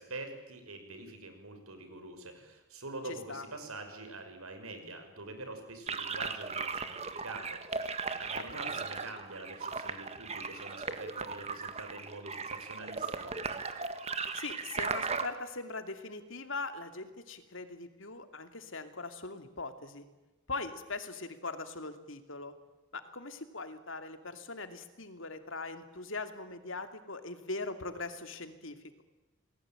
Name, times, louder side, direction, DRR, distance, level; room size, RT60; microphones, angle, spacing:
voice 1, 0.0-13.3, right 2 dB, 90° right, 6 dB, 6.2 m, -45 dB
voice 2, 3.0-3.4 8.4-8.7 14.3-20.0 20.5-22.5 22.9-29.0, left 3 dB, 65° left, 8 dB, 2.7 m, -41 dB
sound 1, 5.9-15.3, right 4 dB, 30° right, 1.7 m, -37 dB
29.0 x 20.0 x 9.1 m, 1.1 s
head